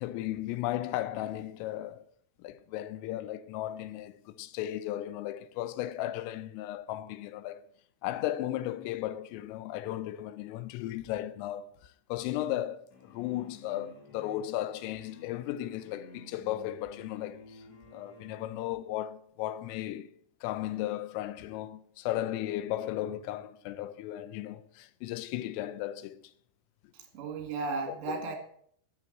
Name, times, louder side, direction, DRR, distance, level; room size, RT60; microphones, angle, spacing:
voice 1, 0.0-2.0 2.4-7.7 8.0-17.6 17.9-20.1 20.4-26.2 27.9-28.2, left 13 dB, 85° left, 3.3 m, -35 dB
sound 1, 12.9-18.8, left 4 dB, 50° left, 2.1 m, -52 dB
voice 2, 26.9-28.4, right 3 dB, 80° right, 5.0 m, -35 dB
12.0 x 7.4 x 7.6 m
omnidirectional pair, 5.9 m